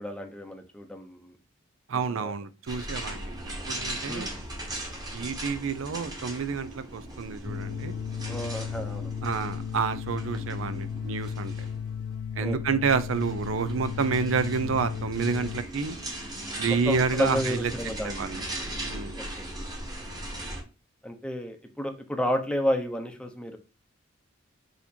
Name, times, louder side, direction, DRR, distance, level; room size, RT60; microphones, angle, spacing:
voice 1, 0.0-1.3 2.1-2.3 4.1-4.3 8.3-9.1 12.4-12.7 16.7-18.1 19.1-19.5 21.0-23.6, equal, 5° left, 0.6 m, -31 dB
voice 2, 1.9-3.3 3.7-4.3 5.1-7.9 9.2-11.5 12.4-16.0 16.6-17.7 18.0-18.4 18.8-19.2, right 5 dB, 90° right, 0.5 m, -29 dB
sound 1, 2.7-20.6, right 1 dB, 20° right, 1.0 m, -38 dB
sound 2, 7.4-15.6, left 7 dB, 85° left, 0.4 m, -35 dB
6.4 x 2.9 x 2.7 m
head